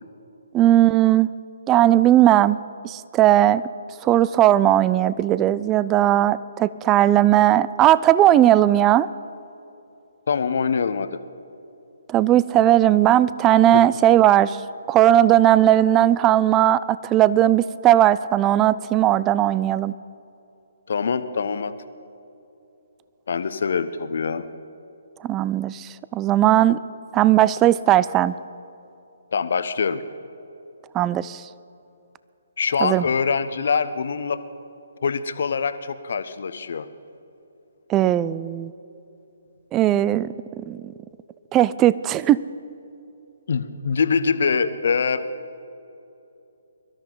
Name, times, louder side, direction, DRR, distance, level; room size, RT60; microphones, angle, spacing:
voice 1, 0.5-1.3 1.7-2.6 2.8-3.6 4.0-9.1 12.1-14.6 14.9-19.9 25.2-26.8 27.1-28.3 30.9-31.4 32.8-33.0 37.9-38.7 39.7-40.3 40.7-40.9 41.5-42.4, right 13 dB, 20° right, 18 dB, 0.3 m, -17 dB
voice 2, 10.3-11.2 20.9-21.7 23.3-24.5 29.3-30.0 32.6-34.4 35.0-36.9 43.5-45.2, left 5 dB, 60° left, 12 dB, 0.8 m, -24 dB
23.0 x 13.0 x 3.9 m, 2.8 s
figure-of-eight pair, 140°, 0 cm